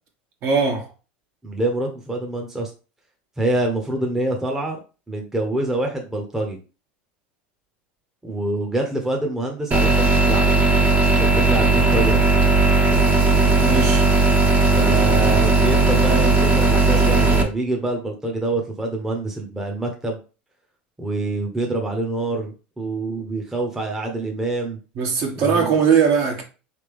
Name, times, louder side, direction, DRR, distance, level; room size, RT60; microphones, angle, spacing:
voice 1, 0.4-0.9 13.6-14.1 24.9-26.4, right 6 dB, 50° right, 1.5 m, -20 dB
voice 2, 1.4-2.7 3.4-4.8 5.1-6.6 8.2-10.5 11.1-12.2 14.7-20.2 21.0-24.8 25.4-25.8, right 2 dB, 10° right, 0.9 m, -26 dB
sound 1, 9.7-17.4, right 3 dB, 30° right, 1.0 m, -17 dB
4.0 x 3.4 x 3.4 m
supercardioid pair, 115°, 5 cm